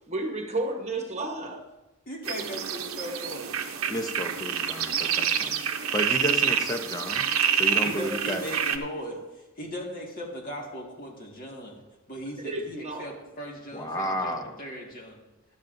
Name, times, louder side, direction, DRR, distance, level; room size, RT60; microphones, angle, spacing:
voice 1, 0.1-1.6 12.4-13.2, right 2 dB, 35° right, 3 dB, 1.1 m, -32 dB
voice 2, 2.1-3.5 7.8-9.2 9.6-11.8 12.1-15.2, equal, 45° left, -1 dB, 1.9 m, -38 dB
sound 1, 2.2-8.8, right 8 dB, 85° right, 0.9 m, -27 dB
voice 3, 3.9-5.6 5.9-7.3 7.5-8.4 13.7-14.6, equal, 20° left, 5 dB, 0.8 m, -32 dB
14.5 x 12.0 x 2.7 m, 1.0 s
head